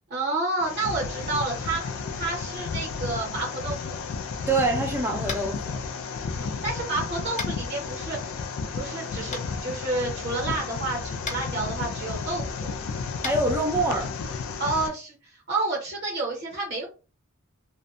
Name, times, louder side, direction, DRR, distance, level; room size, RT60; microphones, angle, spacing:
voice 1, 0.1-4.0 6.3-8.3 8.7-12.7 14.6-16.9, right 2 dB, 55° right, 0.9 m, -30 dB
sound 1, 0.6-14.9, left 5 dB, 70° left, 0.3 m, -33 dB
voice 2, 4.5-5.8 13.2-14.1, right 2 dB, 10° right, 0.3 m, -25 dB
Tap, 5.2-5.5 7.4-7.5 9.3-9.4 11.2-11.4 13.2-13.3, left 4 dB, 35° left, 0.7 m, -32 dB
2.6 x 2.2 x 2.5 m
head